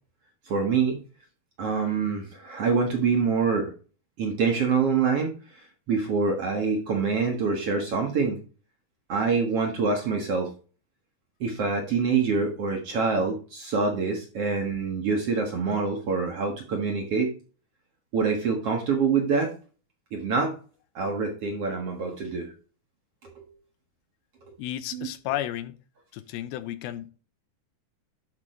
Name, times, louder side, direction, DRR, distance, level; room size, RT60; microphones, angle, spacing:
voice 1, 0.5-1.0 1.6-3.7 4.2-5.6 5.9-8.4 9.1-10.5 11.4-17.3 18.1-19.5 20.1-20.5 20.9-22.5 23.2-23.5 24.4-24.6 24.9-25.1, right 5 dB, 55° right, 2.0 m, -26 dB
voice 2, 24.6-25.8 26.1-27.1, left 13 dB, 85° left, 2.6 m, -33 dB
12.0 x 5.3 x 3.2 m
omnidirectional pair, 4.3 m